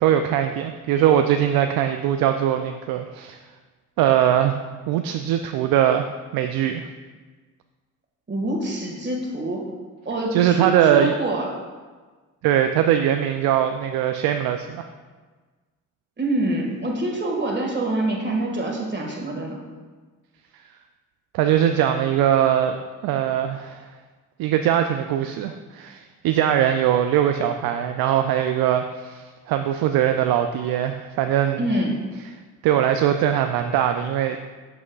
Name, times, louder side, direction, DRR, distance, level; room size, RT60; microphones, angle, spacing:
voice 1, 0.0-3.4 4.0-4.6 4.9-6.1 6.3-6.9 10.3-11.1 12.4-14.9 21.3-22.8 23.0-23.9 24.4-31.7 32.6-34.4, right 10 dB, 60° right, 7 dB, 0.5 m, -21 dB
voice 2, 8.3-9.6 10.1-11.6 16.2-19.6 31.6-31.9, right 1 dB, 25° right, 0 dB, 1.8 m, -25 dB
7.5 x 6.0 x 2.4 m, 1.4 s
hypercardioid pair, 50°, 41 cm